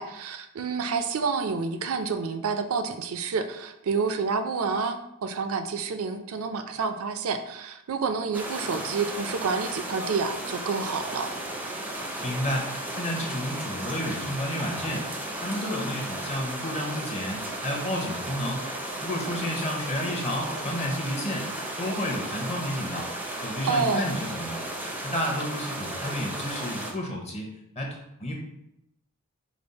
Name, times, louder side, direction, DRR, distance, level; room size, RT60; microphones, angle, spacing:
voice 1, 0.0-11.3 19.2-19.4 23.7-24.1, right 5 dB, 65° right, 8 dB, 0.4 m, -29 dB
sound 1, 8.3-26.9, right 1 dB, 5° right, 0.4 m, -34 dB
voice 2, 12.2-15.1 15.4-18.6 19.0-21.5 21.8-23.1 23.4-24.6 25.0-28.4, left 1 dB, 30° left, 0 dB, 0.8 m, -31 dB
5.1 x 2.0 x 4.0 m, 0.82 s
head